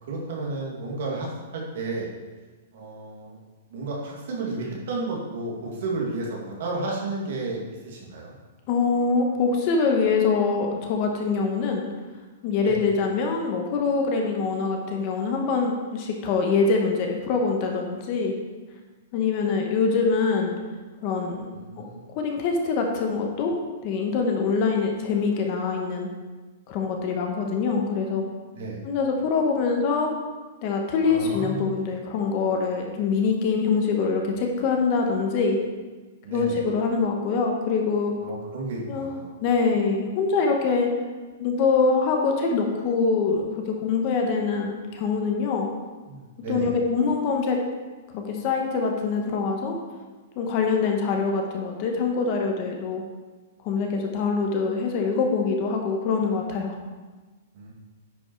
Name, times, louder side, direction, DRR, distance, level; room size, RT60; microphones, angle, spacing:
voice 1, 0.0-2.1 2.7-3.4 3.7-8.3 12.6-12.8 21.5-22.0 28.5-28.8 31.0-31.7 36.2-36.6 38.2-39.3 46.1-46.7 57.5-57.7, right 3 dB, 50° right, -2 dB, 2.1 m, -32 dB
voice 2, 8.7-11.9 12.4-18.4 19.1-20.6 21.0-21.8 22.1-23.6 23.8-26.1 26.7-28.3 28.8-30.1 30.6-35.6 36.3-38.1 38.9-40.9 41.4-45.7 46.5-47.6 48.1-49.8 50.4-53.0 53.6-56.8, left 4 dB, 30° left, 2 dB, 0.9 m, -24 dB
10.0 x 5.3 x 4.5 m, 1.3 s
hypercardioid pair, 180°, 0 cm